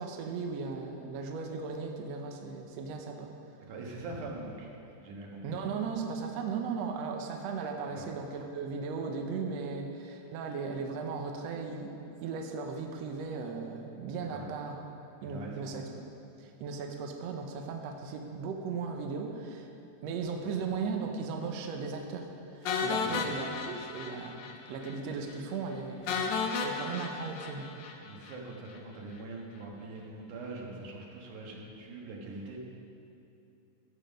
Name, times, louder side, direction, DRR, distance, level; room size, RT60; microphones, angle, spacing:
voice 1, 0.0-3.3 5.4-11.9 12.2-14.7 15.2-15.9 16.4-19.7 20.0-27.8, right 5 dB, 70° right, 3 dB, 1.8 m, -37 dB
voice 2, 3.7-4.7 5.0-5.6 7.9-8.1 14.3-14.5 15.2-15.8 20.6-20.7 23.0-23.4 28.0-32.6, right 2 dB, 85° right, -1 dB, 3.0 m, -43 dB
sound 1, 22.7-24.6 24.8-25.0 25.3-25.4 26.1-28.4, left 5 dB, 75° left, 2.2 m, -33 dB
15.0 x 7.2 x 5.2 m, 2.7 s
omnidirectional pair, 3.5 m